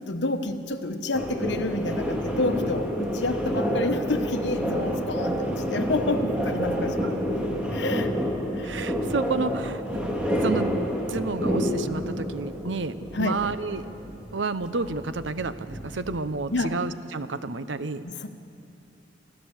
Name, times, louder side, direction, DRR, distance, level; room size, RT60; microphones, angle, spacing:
voice 1, 0.0-7.4 7.7-8.1 8.5-8.7 13.1-13.4 16.5-16.7 18.0-18.3, left 2 dB, 70° left, 8 dB, 1.2 m, -29 dB
sound 1, 1.1-16.2, equal, 5° right, 2.0 m, -29 dB
voice 2, 8.6-13.8 14.3-18.1, right 3 dB, 80° right, 13 dB, 0.8 m, -31 dB
27.5 x 14.5 x 7.3 m, 2.6 s
head